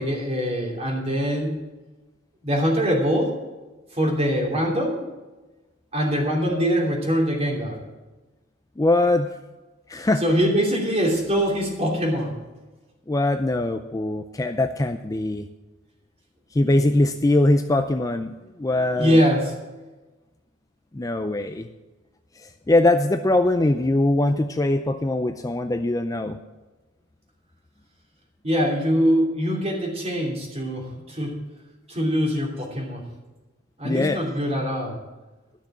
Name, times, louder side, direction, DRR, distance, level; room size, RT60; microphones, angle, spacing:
voice 1, 0.0-1.5 2.4-3.3 3.9-5.1 5.9-7.8 10.2-12.3 18.9-19.5 28.4-31.4 31.9-33.0 33.8-35.0, equal, 30° right, 0 dB, 2.9 m, -23 dB
voice 2, 8.8-9.3 9.9-10.2 13.1-15.5 16.5-19.2 20.9-21.7 22.4-26.4 33.8-34.3, left 2 dB, 15° left, 7 dB, 0.4 m, -22 dB
12.5 x 6.4 x 7.3 m, 1.2 s
head